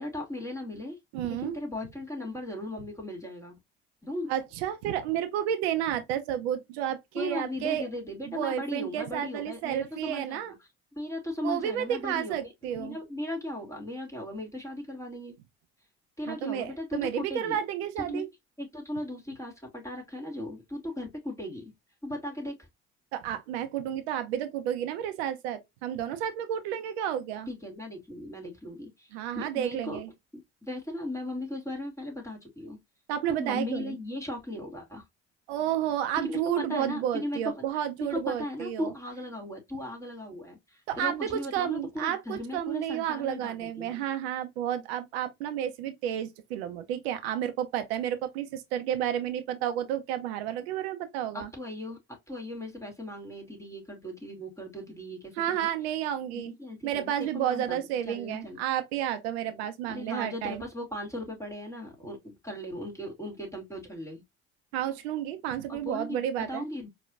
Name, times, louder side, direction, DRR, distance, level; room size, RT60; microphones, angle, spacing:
voice 1, 0.0-1.0 1.2-3.6 4.0-4.3 7.1-10.5 10.9-15.4 16.2-17.6 18.0-18.3 18.6-21.7 22.0-22.6 27.5-29.1 29.3-30.0 30.3-32.8 33.3-35.0 36.2-37.5 38.1-44.0 51.3-52.0 52.3-55.7 56.3-58.6 59.5-64.2 65.7-66.9, left 1 dB, 10° left, 2.6 m, -37 dB
voice 2, 1.1-1.6 4.3-7.9 8.3-10.5 11.4-13.0 16.3-18.3 23.1-27.5 29.1-30.1 33.1-34.0 35.5-38.9 40.9-51.5 55.4-56.5 56.8-60.6 64.7-66.6, right 10 dB, 85° right, 0.7 m, -31 dB
4.5 x 3.1 x 2.5 m
hypercardioid pair, 60°, 31 cm